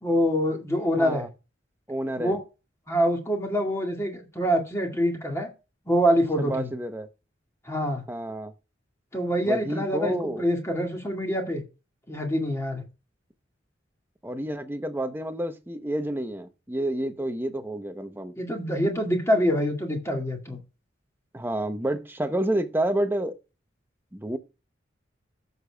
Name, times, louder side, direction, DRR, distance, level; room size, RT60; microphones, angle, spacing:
voice 1, 0.0-1.3 2.2-2.4 2.9-5.5 5.9-6.7 7.7-8.0 9.1-11.6 12.1-12.8 18.4-20.6, equal, 15° left, 2.0 m, -25 dB
voice 2, 1.0-1.3 1.9-2.4 6.4-7.1 8.1-8.5 9.4-10.5 14.2-18.3 21.3-23.4 24.1-24.4, right 1 dB, 10° right, 0.8 m, -29 dB
15.0 x 6.7 x 2.3 m
head